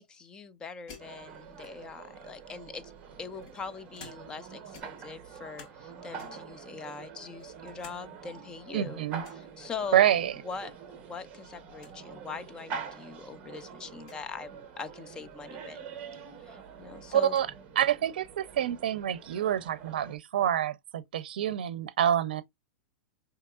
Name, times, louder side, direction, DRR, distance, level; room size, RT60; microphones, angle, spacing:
voice 1, 0.0-2.9 3.2-9.0 9.3-10.1 10.4-15.8 16.5-17.4, left 5 dB, 15° left, 0.4 m, -42 dB
sound 1, 0.9-2.0 2.9-4.5 4.7-5.9 6.2-6.6 7.0-8.0 8.3-8.4 9.2-9.5 10.9-11.3 11.5-11.6 11.8-12.0 12.8-12.9 14.0-14.2 15.9-16.0 16.4-17.5, left 5 dB, 50° left, 1.3 m, -53 dB
sound 2, 1.0-20.2, right 6 dB, 30° right, 0.9 m, -46 dB
voice 2, 8.7-9.2 9.9-10.3 17.1-17.5 17.8-22.4, right 10 dB, 80° right, 0.5 m, -27 dB
4.5 x 2.9 x 2.3 m
supercardioid pair, 150°, 5 cm